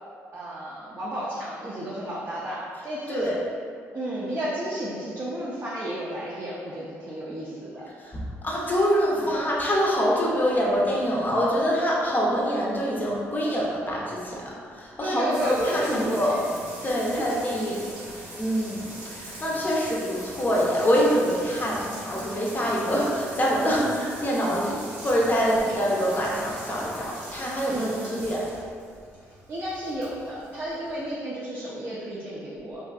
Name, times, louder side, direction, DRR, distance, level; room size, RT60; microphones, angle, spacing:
voice 1, 0.3-3.3 3.9-7.8 15.0-16.4 17.1-17.2 23.8-23.9 25.6-25.8 27.7-28.2 29.5-32.8, right 1 dB, 35° right, -7 dB, 0.5 m, -32 dB
voice 2, 8.0-14.4 14.7-16.4 16.8-18.8 19.1-28.5, equal, 30° left, -4 dB, 0.6 m, -25 dB
sound 1, 15.3-31.1, right 1 dB, 85° right, 0.7 m, -42 dB
2.6 x 2.3 x 2.3 m, 2.2 s
supercardioid pair, 65°, 6 cm